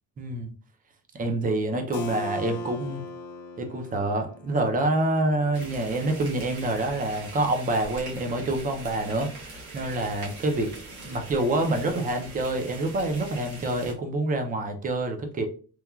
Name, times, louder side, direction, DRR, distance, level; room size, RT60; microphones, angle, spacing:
voice 1, 0.2-0.5 1.1-3.0 3.6-10.7 11.0-15.5, right 2 dB, 25° right, 4 dB, 0.4 m, -27 dB
Keyboard (musical), 1.9-7.5, left 3 dB, 55° left, 0.5 m, -41 dB
sound 1, 5.5-13.9, right 2 dB, 85° right, 1.2 m, -42 dB
3.0 x 2.1 x 2.3 m, 0.38 s
cardioid pair, 175°, 35 cm